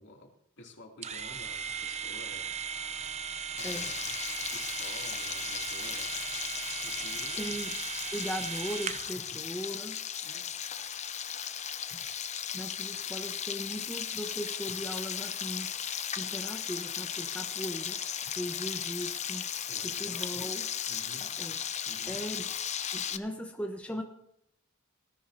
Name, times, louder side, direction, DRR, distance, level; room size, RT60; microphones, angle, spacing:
voice 1, 0.0-2.6 3.5-4.1 4.5-6.2 6.8-7.4 10.2-10.6 19.7-20.5 20.9-21.4 21.8-22.2, left 1 dB, 60° left, 1 dB, 2.9 m, -51 dB
sound 1, 1.0-9.2, right 7 dB, 30° right, 0.8 m, -37 dB
Frying (food), 3.6-23.2, left 9 dB, 35° left, 0.7 m, -36 dB
voice 2, 7.4-7.7 8.1-10.0 11.9-12.0 12.5-15.7 16.2-18.0 18.3-19.5 19.8-20.7 21.4-21.6 22.1-22.5 22.9-24.0, equal, 5° left, 3 dB, 1.1 m, -38 dB
20.0 x 14.0 x 2.9 m, 0.75 s
head